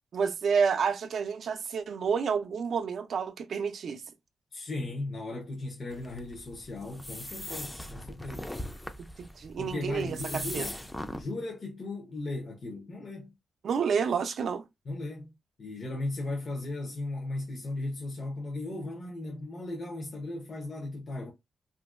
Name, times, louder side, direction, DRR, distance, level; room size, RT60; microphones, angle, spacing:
voice 1, 0.1-4.0 9.2-10.7 13.6-14.6, right 6 dB, 70° right, 0.4 m, -29 dB
voice 2, 4.5-8.5 9.6-10.7 11.2-13.3 14.9-15.3 15.6-21.3, left 2 dB, 50° left, 0.7 m, -36 dB
sound 1, 5.9-11.2, left 1 dB, 10° left, 0.4 m, -40 dB
2.9 x 2.5 x 2.4 m
cardioid pair, 85°, 0 cm